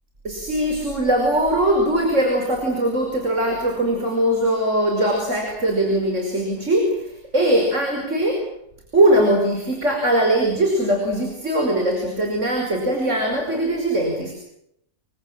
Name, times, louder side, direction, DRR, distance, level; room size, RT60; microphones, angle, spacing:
voice 1, 0.2-8.4 8.9-14.3, right 1 dB, 55° right, 3 dB, 6.0 m, -21 dB
29.5 x 24.5 x 7.7 m, 0.77 s
omnidirectional pair, 1.6 m